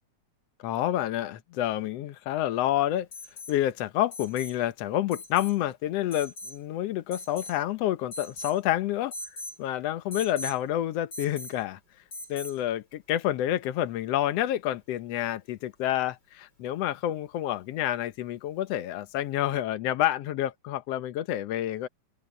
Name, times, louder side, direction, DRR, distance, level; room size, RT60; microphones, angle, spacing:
voice 1, 0.6-3.1 3.5-9.1 9.6-11.8 12.3-21.9, left 13 dB, 80° left, 1.4 m, -28 dB
Alarm, 3.1-3.6 4.1-4.6 5.1-5.6 6.1-6.6 7.1-7.6 8.1-8.6 9.1-9.6 10.1-10.6 11.1-11.6 12.1-12.6 14.3-14.4, left 2 dB, 30° left, 8.0 m, -40 dB
open air
omnidirectional pair, 4.1 m